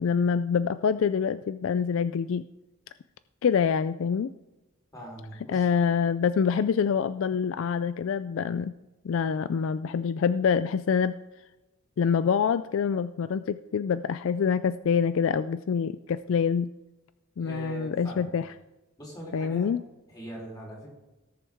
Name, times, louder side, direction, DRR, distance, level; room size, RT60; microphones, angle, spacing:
voice 1, 0.0-2.4 3.4-4.3 5.5-8.7 9.0-11.2 12.0-16.7 17.4-18.4 19.3-19.8, left 6 dB, 65° left, 14 dB, 0.3 m, -26 dB
voice 2, 4.9-5.7 17.4-18.3 19.0-19.7 20.1-20.9, right 1 dB, 15° left, -3 dB, 3.9 m, -41 dB
18.0 x 7.0 x 3.5 m, 1.0 s
head